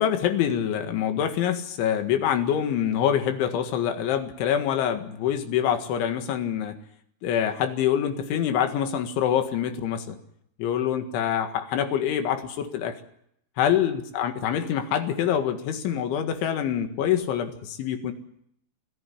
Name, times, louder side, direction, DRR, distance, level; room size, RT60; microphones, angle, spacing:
voice 1, 0.0-6.8 7.2-10.2 10.6-13.0 13.6-18.1, left 9 dB, 90° left, 8 dB, 4.2 m, -25 dB
25.5 x 14.5 x 10.0 m, 0.73 s
omnidirectional pair, 5.3 m